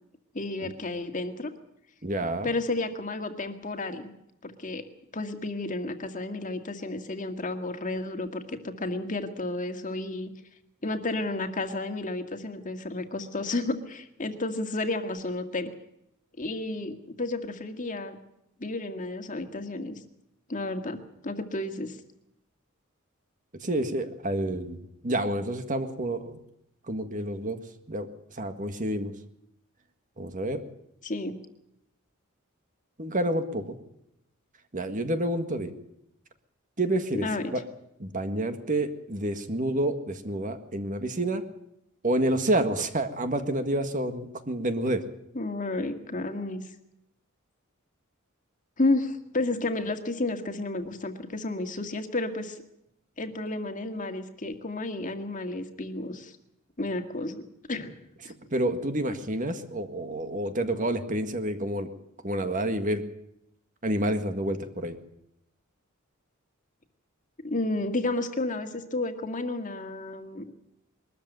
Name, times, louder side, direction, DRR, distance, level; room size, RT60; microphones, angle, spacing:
voice 1, 0.3-1.5 2.4-4.1 4.4-4.8 5.1-10.3 10.8-15.7 16.4-18.2 18.6-20.0 20.5-21.0 21.2-22.0 31.0-31.3 37.2-37.4 45.3-46.6 48.8-52.6 53.2-56.3 56.8-57.4 57.7-58.0 58.2-58.3 67.4-70.4, left 2 dB, 35° left, 6 dB, 1.9 m, -31 dB
voice 2, 2.0-2.5 23.6-26.4 26.9-27.6 27.9-28.1 28.3-29.1 30.2-30.6 33.0-33.8 34.7-35.7 36.8-37.6 38.0-41.4 42.0-45.0 58.5-61.9 62.2-63.0 63.8-65.0, right 1 dB, 40° right, 8 dB, 1.8 m, -29 dB
22.0 x 13.5 x 9.2 m, 0.80 s
head